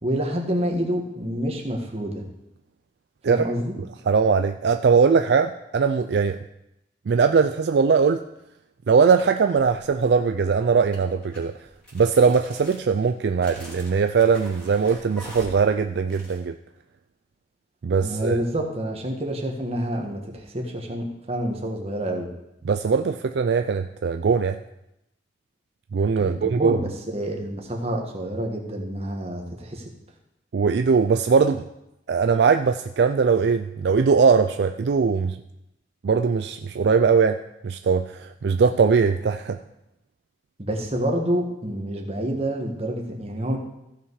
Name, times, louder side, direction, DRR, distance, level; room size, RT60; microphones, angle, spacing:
voice 1, 0.0-2.2 3.2-3.7 18.0-22.3 26.2-26.8 27.1-29.8 40.6-43.6, right 1 dB, 35° right, 1 dB, 1.5 m, -28 dB
voice 2, 4.1-6.4 7.1-8.2 8.9-11.5 11.9-16.5 17.8-18.4 22.6-24.6 25.9-26.8 30.5-31.6 32.1-35.4 36.0-39.6, right 5 dB, 65° right, 7 dB, 0.4 m, -20 dB
sound 1, 9.6-10.0 10.9-16.4, equal, 5° left, 3.1 m, -44 dB
15.0 x 5.7 x 4.7 m, 0.87 s
head